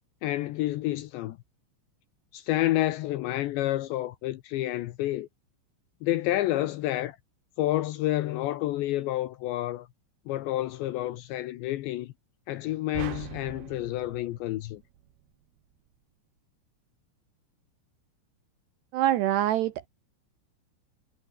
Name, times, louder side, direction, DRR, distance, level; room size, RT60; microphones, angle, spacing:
voice 1, 0.2-1.4 2.3-5.3 6.0-7.2 7.6-9.9 10.3-12.1 12.5-14.8, left 15 dB, 75° left, 2.8 m, -29 dB
sound 1, 12.9-15.4, right 11 dB, 60° right, 3.4 m, -42 dB
voice 2, 18.9-19.9, right 13 dB, 75° right, 2.6 m, -25 dB
omnidirectional pair, 5.9 m